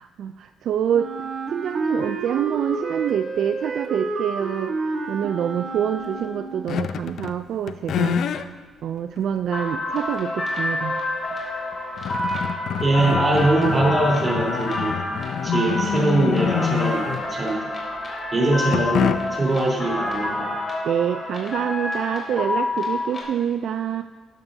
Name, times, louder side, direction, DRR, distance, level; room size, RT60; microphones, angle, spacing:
voice 1, 0.0-8.4 8.8-11.0 20.8-24.0, right 9 dB, 70° right, 8 dB, 0.3 m, -26 dB
Wind instrument woodwind instrument, 0.9-6.7, right 3 dB, 50° right, 1.3 m, -30 dB
sound 1, 6.7-7.4 7.7-8.5 9.2-9.3 11.3-11.4 11.7-17.5 18.7-19.5, left 7 dB, 70° left, 0.5 m, -26 dB
sound 2, 9.5-23.2, left 2 dB, 35° left, 3.6 m, -28 dB
voice 2, 12.8-15.0 15.4-17.6 18.3-20.6, right 2 dB, 30° right, -3 dB, 3.6 m, -22 dB
13.5 x 11.5 x 2.7 m, 1.4 s
cardioid pair, 90°, 0 cm